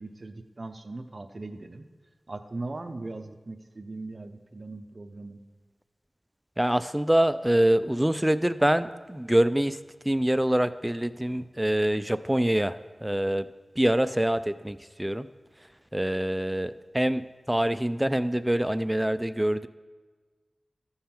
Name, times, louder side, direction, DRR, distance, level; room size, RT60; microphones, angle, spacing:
voice 1, 0.0-1.9 2.3-5.4, right 2 dB, 45° right, 6 dB, 0.6 m, -39 dB
voice 2, 6.6-9.8 10.0-13.5 13.8-15.3 15.9-19.7, right 1 dB, 10° right, 13 dB, 0.3 m, -25 dB
14.5 x 5.6 x 4.3 m, 1.3 s
wide cardioid pair, 70°, 0 cm